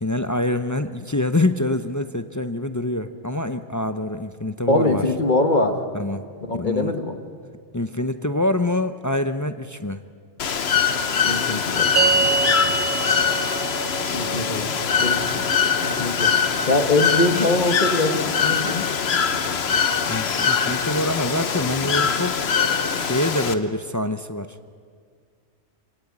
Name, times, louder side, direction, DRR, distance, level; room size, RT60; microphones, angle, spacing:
voice 1, 0.0-5.0 5.9-6.3 6.5-6.9 7.7-10.0 15.3-15.7 20.1-22.4 23.0-24.6, left 1 dB, 20° left, 9 dB, 0.5 m, -25 dB
voice 2, 4.7-5.8 6.4-7.2 11.2-12.3 14.1-14.7 15.0-15.5 15.8-16.3 16.7-18.9, left 2 dB, 45° left, 6 dB, 1.4 m, -23 dB
Bird / Water, 10.4-23.5, left 6 dB, 65° left, 1.2 m, -23 dB
sound 1, 12.0-18.5, right 3 dB, 50° right, 1.6 m, -27 dB
25.0 x 17.0 x 8.6 m, 2.1 s
omnidirectional pair, 1.2 m